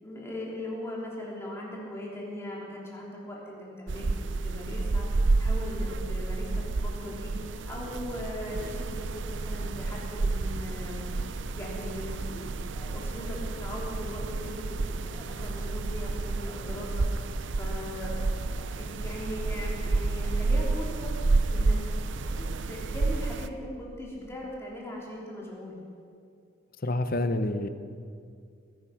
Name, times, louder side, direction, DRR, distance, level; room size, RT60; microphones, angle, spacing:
voice 1, 0.0-4.1 4.4-7.3 7.7-14.7 15.1-17.1 17.6-18.2 18.5-21.1 21.5-21.8 22.2-25.8, left 1 dB, 15° left, -4 dB, 3.2 m, -39 dB
sound 1, 3.9-23.5, right 3 dB, 65° right, 0.6 m, -30 dB
voice 2, 26.8-27.7, left 1 dB, 50° left, 10 dB, 0.9 m, -27 dB
21.0 x 10.5 x 5.8 m, 2.3 s
head